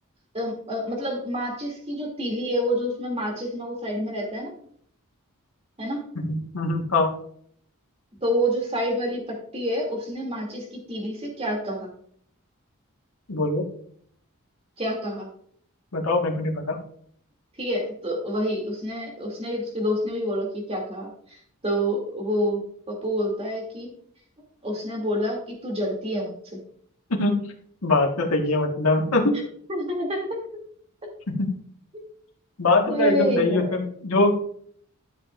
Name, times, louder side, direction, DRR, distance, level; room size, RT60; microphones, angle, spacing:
voice 1, 0.3-4.6 5.8-6.0 8.2-11.9 14.8-15.3 17.6-21.4 21.6-23.9 24.6-26.6 29.7-30.4 31.9-32.0 32.9-33.8, equal, 30° right, 0 dB, 2.7 m, -28 dB
voice 2, 6.2-7.1 13.3-13.7 15.9-16.8 27.1-27.4 27.8-29.4 31.3-31.5 32.6-34.4, left 2 dB, 85° left, 0 dB, 1.6 m, -23 dB
13.5 x 7.1 x 2.6 m, 0.63 s
head